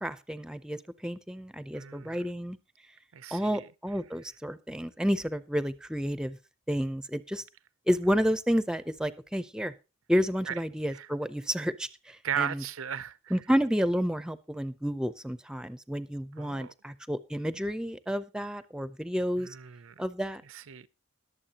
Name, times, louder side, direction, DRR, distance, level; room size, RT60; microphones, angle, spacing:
voice 1, 0.0-2.6 3.3-6.4 6.7-7.4 7.9-9.7 10.1-12.6 13.3-19.5 20.0-20.4, equal, 5° right, 0.5 m, -30 dB
voice 2, 1.7-2.2 3.1-3.7 10.5-10.6 10.9-11.1 12.2-13.3 16.4-16.7 19.4-20.0 20.5-20.9, right 8 dB, 80° right, 0.6 m, -36 dB
20.5 x 7.3 x 2.9 m
head